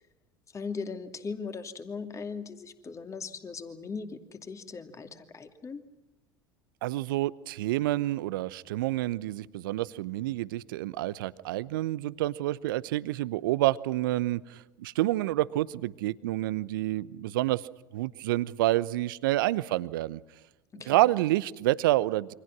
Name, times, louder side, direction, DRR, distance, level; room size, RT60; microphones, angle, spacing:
voice 1, 0.5-5.8 20.7-21.1, left 5 dB, 25° left, 7 dB, 2.7 m, -39 dB
voice 2, 6.8-17.6 17.9-20.2 20.9-22.3, right 16 dB, 65° right, 19 dB, 0.9 m, -28 dB
28.5 x 25.0 x 6.1 m, 1.0 s
figure-of-eight pair, 75°, 12 cm